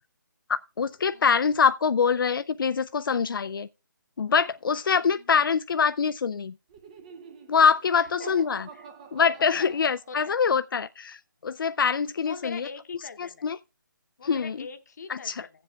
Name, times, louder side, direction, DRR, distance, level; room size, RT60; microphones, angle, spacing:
voice 1, 0.5-3.7 4.2-6.5 7.5-8.7 9.1-12.7 13.2-13.6 14.3-14.6 15.1-15.3, left 6 dB, 80° left, 0.4 m, -24 dB
voice 2, 4.9-5.4 7.9-8.3 8.7-8.9 9.6-9.7 10.1-10.4 12.2-13.5 14.2-15.6, left 5 dB, 50° left, 0.8 m, -43 dB
Laughter, 6.7-10.4, right 5 dB, 20° right, 0.5 m, -46 dB
16.0 x 7.6 x 2.3 m
hypercardioid pair, 160°, 11 cm